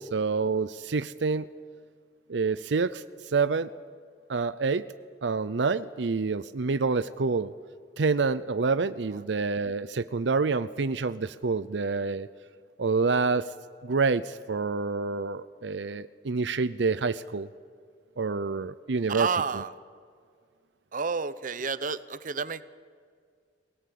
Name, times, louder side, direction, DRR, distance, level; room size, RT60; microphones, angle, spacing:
voice 1, 0.0-1.5 2.3-3.7 4.3-4.8 5.2-7.5 8.0-12.3 12.8-13.5 13.8-17.5 18.2-19.6, right 4 dB, 80° right, 14 dB, 0.6 m, -27 dB
voice 2, 19.1-19.7 20.9-22.6, right 5 dB, 50° right, 15 dB, 0.9 m, -30 dB
25.0 x 18.5 x 8.5 m, 2.1 s
head